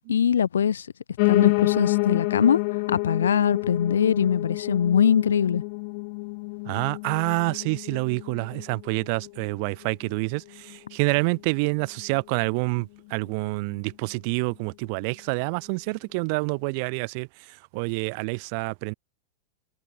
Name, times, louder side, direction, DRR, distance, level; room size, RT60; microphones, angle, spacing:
voice 1, 0.1-0.9 1.3-2.6 2.9-5.6, left 8 dB, 65° left, 0.9 m, -22 dB
Piano, 1.2-10.3 10.7-11.9 12.1-12.2 12.5-12.6 12.8-12.9 13.4-13.5, left 31 dB, 45° left, 0.4 m, -28 dB
voice 2, 6.7-17.3 17.7-18.9, right 34 dB, 45° right, 0.3 m, -27 dB
figure-of-eight pair, 90°, 0 cm